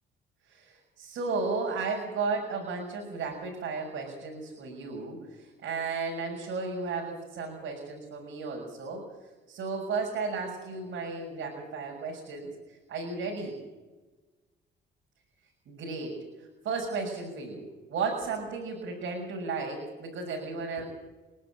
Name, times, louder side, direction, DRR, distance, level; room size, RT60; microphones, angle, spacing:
voice 1, 0.5-9.0 9.5-12.5 12.9-13.6 15.7-16.2 16.6-20.8, right 4 dB, 75° right, -1 dB, 6.5 m, -34 dB
28.5 x 11.0 x 9.0 m, 1.2 s
cardioid pair, 90°, 20 cm